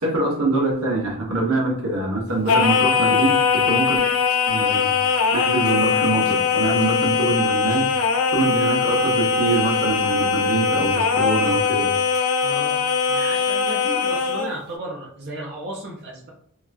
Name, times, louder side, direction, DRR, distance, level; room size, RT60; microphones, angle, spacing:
voice 1, 0.0-4.0 4.5-4.9 5.3-7.9 8.3-11.9, right 2 dB, 80° right, -1 dB, 1.2 m, -24 dB
Singing, 2.5-14.5, left 5 dB, 80° left, 0.5 m, -21 dB
voice 2, 12.4-16.3, right 1 dB, 55° right, -3 dB, 0.8 m, -34 dB
2.9 x 2.5 x 3.4 m, 0.67 s
head